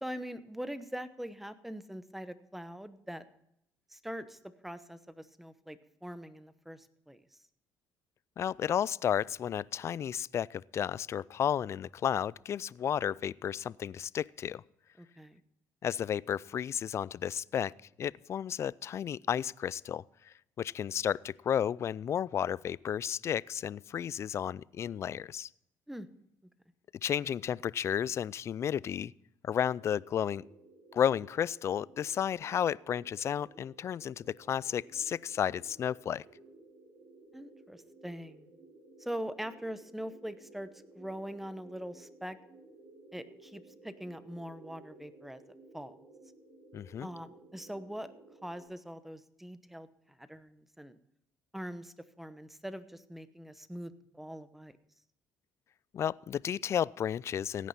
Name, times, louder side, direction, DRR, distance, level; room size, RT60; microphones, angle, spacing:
voice 1, 0.0-3.2 3.9-7.2 15.0-15.4 25.9-26.1 37.3-38.5 39.0-40.7 40.9-42.4 43.1-45.4 45.7-45.9 47.0-48.1 48.4-49.9 50.2-51.0 51.5-54.8, equal, 5° right, 13 dB, 0.9 m, -42 dB
voice 2, 8.4-14.6 15.8-17.7 18.0-25.5 27.0-29.1 29.4-30.4 30.9-36.2 46.7-47.1 55.9-57.7, left 9 dB, 40° left, 23 dB, 0.3 m, -32 dB
sound 1, 29.6-48.6, right 2 dB, 65° right, 5.5 m, -57 dB
16.0 x 9.3 x 4.2 m, 0.76 s
cardioid pair, 105°, 7 cm